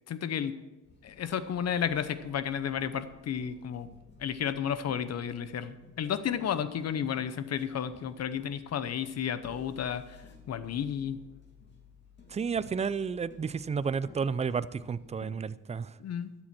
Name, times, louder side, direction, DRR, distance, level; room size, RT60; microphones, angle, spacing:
voice 1, 0.1-0.5 1.0-3.9 4.2-10.2 10.5-11.2 16.0-16.4, left 8 dB, 55° left, 13 dB, 0.9 m, -32 dB
sound 1, 0.8-15.3, left 4 dB, 35° left, 2.7 m, -56 dB
voice 2, 12.3-15.9, right 6 dB, 20° right, 17 dB, 0.4 m, -31 dB
13.0 x 7.6 x 6.0 m, 1.1 s
cardioid pair, 90°, 30 cm